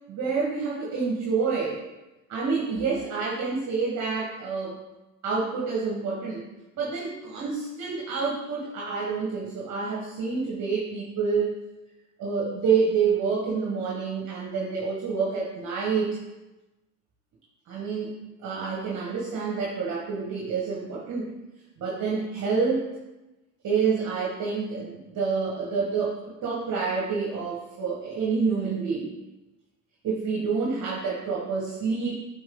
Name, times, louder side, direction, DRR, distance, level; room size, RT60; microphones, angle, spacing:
voice 1, 0.1-1.8 2.3-4.8 5.2-6.4 6.7-11.5 12.2-16.2 17.7-18.2 18.4-21.3 21.8-22.9 23.6-29.1 30.0-32.3, right 5 dB, 45° right, -3 dB, 1.6 m, -28 dB
7.9 x 4.2 x 3.8 m, 1.0 s
hypercardioid pair, 75°, 40 cm